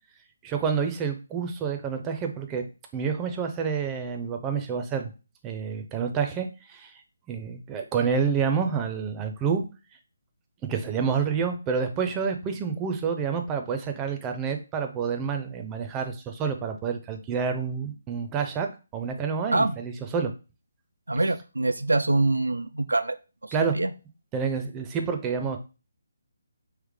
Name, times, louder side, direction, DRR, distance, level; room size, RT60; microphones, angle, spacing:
voice 1, 0.4-2.6 2.9-5.1 5.4-6.9 7.3-9.6 10.6-18.7 18.9-20.3 23.5-23.8 24.3-25.6, right 6 dB, 15° right, 5 dB, 0.5 m, -28 dB
voice 2, 21.1-23.2 23.4-23.9, right 2 dB, 80° right, 10 dB, 0.3 m, -24 dB
3.2 x 3.1 x 3.6 m, 0.31 s
figure-of-eight pair, 145°, 0 cm